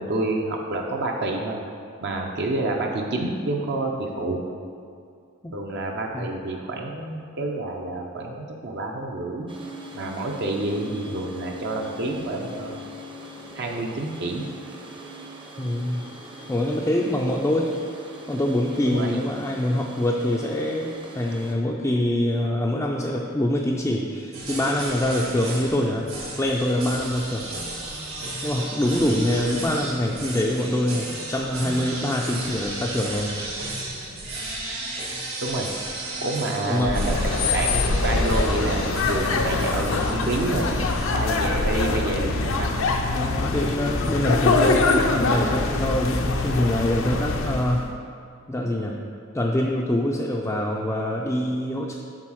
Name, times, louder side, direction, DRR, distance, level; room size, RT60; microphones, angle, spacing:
voice 1, 0.0-1.6 2.0-4.4 5.5-9.5 9.9-12.8 13.5-14.4 18.8-19.1 35.4-35.7 36.2-42.7, right 2 dB, 55° right, 1 dB, 0.7 m, -28 dB
sound 1, 9.5-21.6, equal, 25° right, 0.7 m, -41 dB
voice 2, 15.6-16.0 16.5-17.7 18.3-27.4 28.4-33.3 36.6-37.0 43.1-47.9 48.5-48.9 49.3-52.0, left 1 dB, 15° left, -2 dB, 0.4 m, -25 dB
sound 2, 24.3-41.2, right 2 dB, 75° right, 2.0 m, -34 dB
sound 3, 36.8-47.9, left 3 dB, 70° left, 0.6 m, -24 dB
7.4 x 4.0 x 6.3 m, 2.3 s
head